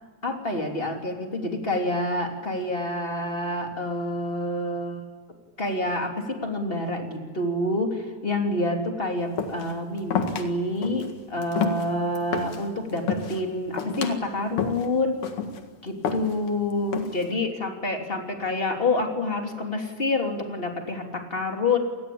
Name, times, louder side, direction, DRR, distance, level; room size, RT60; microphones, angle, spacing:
voice 1, 0.2-5.0 5.6-15.2 15.8-21.8, left 2 dB, 20° left, 2 dB, 3.1 m, -27 dB
sound 1, 9.4-9.8 10.1-10.5 10.8-11.1 11.4-12.6 13.0-13.4 13.8-14.2 14.6-14.9 15.2-15.6 16.1-16.5 16.9-17.3, left 6 dB, 85° left, 3.3 m, -28 dB
28.0 x 20.5 x 8.7 m, 1.5 s
omnidirectional pair, 3.4 m